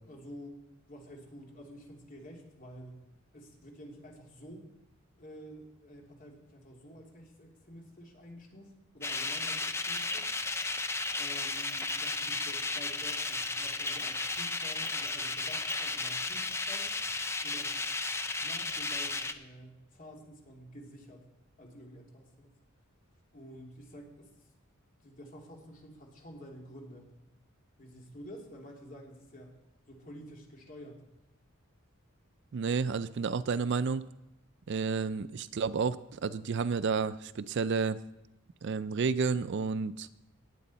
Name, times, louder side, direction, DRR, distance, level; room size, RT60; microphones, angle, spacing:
voice 1, 0.0-0.6 0.9-3.0 3.3-4.7 5.2-10.3 11.1-17.0 17.4-17.7 18.4-21.2 21.6-22.5 23.3-24.3 25.0-27.1 27.8-29.5 29.9-31.0, equal, 40° left, 0 dB, 2.7 m, -49 dB
sound 1, 9.0-19.3, left 3 dB, 10° left, 0.5 m, -34 dB
voice 2, 32.5-34.1 34.7-38.0 38.6-40.1, right 5 dB, 55° right, 15 dB, 0.4 m, -31 dB
18.5 x 8.5 x 4.1 m, 0.89 s
head